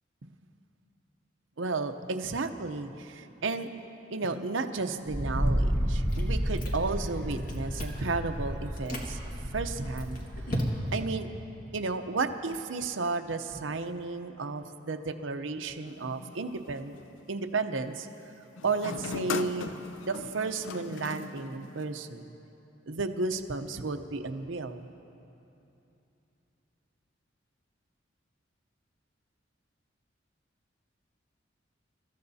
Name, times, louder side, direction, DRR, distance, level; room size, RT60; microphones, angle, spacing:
voice 1, 1.6-3.7 4.1-9.2 9.5-10.2 10.9-11.3 11.7-16.9 17.3-18.1 18.6-22.3 22.9-24.9, right 3 dB, 80° right, 7 dB, 0.8 m, -33 dB
Wind, 5.1-10.6, equal, 10° left, 1.5 m, -31 dB
Chewing mastication, 6.1-7.0 7.3-8.1 8.7-9.1 9.6-11.1, equal, 45° left, 1.8 m, -36 dB
sound 1, 15.9-17.1 18.6-22.1, left 4 dB, 80° left, 0.6 m, -39 dB
28.5 x 14.0 x 2.8 m, 2.8 s
head